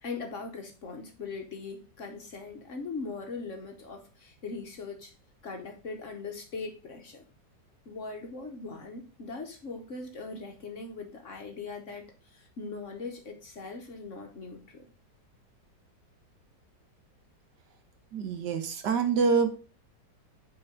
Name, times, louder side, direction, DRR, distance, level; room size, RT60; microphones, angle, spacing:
voice 1, 0.0-5.1 5.4-7.2 7.9-14.8, left 4 dB, 50° left, 1.1 m, -40 dB
voice 2, 18.1-19.6, right 5 dB, 70° right, 1.6 m, -26 dB
6.8 x 4.4 x 4.9 m
omnidirectional pair, 1.9 m